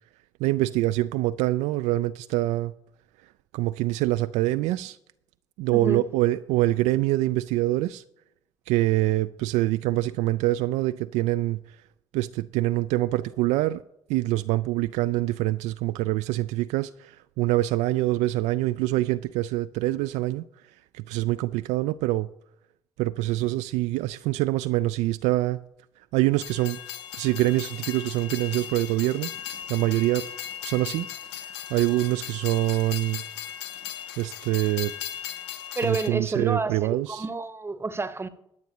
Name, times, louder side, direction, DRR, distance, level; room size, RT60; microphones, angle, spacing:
voice 1, 0.4-2.7 3.5-5.0 5.6-8.0 8.7-11.6 12.1-13.8 14.1-20.4 20.9-22.3 23.0-25.6 26.1-26.8 27.1-30.3 30.6-31.1 31.7-33.2 34.2-34.9 35.8-37.3, right 17 dB, 55° right, 0.4 m, -25 dB
voice 2, 5.7-6.0 35.8-38.3, right 3 dB, 15° right, 0.9 m, -29 dB
Train, 26.3-36.1, left 10 dB, 70° left, 0.7 m, -37 dB
20.0 x 7.9 x 2.8 m
figure-of-eight pair, 45°, 14 cm